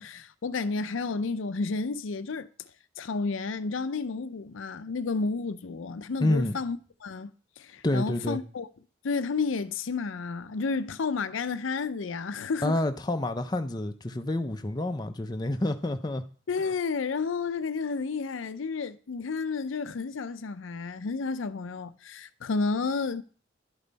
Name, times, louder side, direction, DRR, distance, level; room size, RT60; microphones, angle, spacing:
voice 1, 0.0-2.5 3.0-7.3 7.6-8.7 9.0-12.8 16.5-23.2, left 4 dB, 90° left, 0.5 m, -31 dB
voice 2, 6.2-6.6 7.8-8.4 12.6-16.2, left 1 dB, 20° left, 0.5 m, -28 dB
11.5 x 5.4 x 4.0 m
head